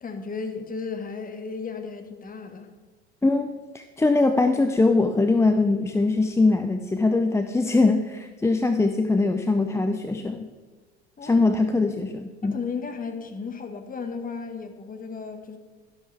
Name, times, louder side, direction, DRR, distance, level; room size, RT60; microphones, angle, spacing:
voice 1, 0.0-2.7 11.2-11.4 12.5-15.6, left 5 dB, 25° left, 1.7 m, -34 dB
voice 2, 3.2-10.5 11.2-12.6, left 3 dB, 10° left, 0.6 m, -22 dB
12.5 x 12.0 x 3.5 m
hypercardioid pair, 75°, 33 cm